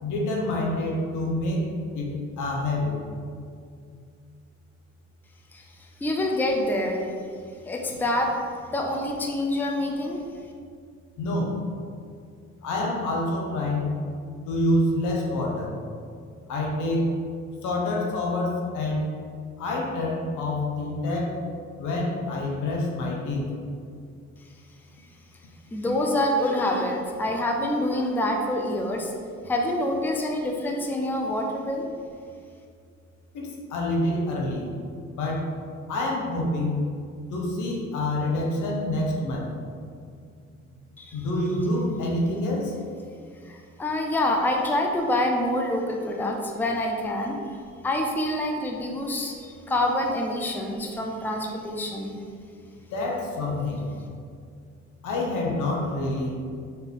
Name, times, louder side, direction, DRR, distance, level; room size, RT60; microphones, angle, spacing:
voice 1, 0.0-3.0 11.2-11.6 12.6-13.9 14.4-15.7 16.5-17.2 17.6-19.1 19.6-21.4 21.8-23.5 33.3-34.7 35.1-35.5 35.9-36.8 37.3-39.5 41.1-42.8 52.9-53.8 55.0-56.3, left 1 dB, 80° left, -1 dB, 0.9 m, -27 dB
voice 2, 6.0-7.1 7.6-8.4 8.7-10.2 25.7-29.1 29.5-31.9 41.0-41.2 43.5-47.6 47.8-52.2, left 1 dB, 5° left, 1 dB, 0.4 m, -26 dB
4.2 x 2.6 x 3.6 m, 2.2 s
cardioid pair, 90°, 30 cm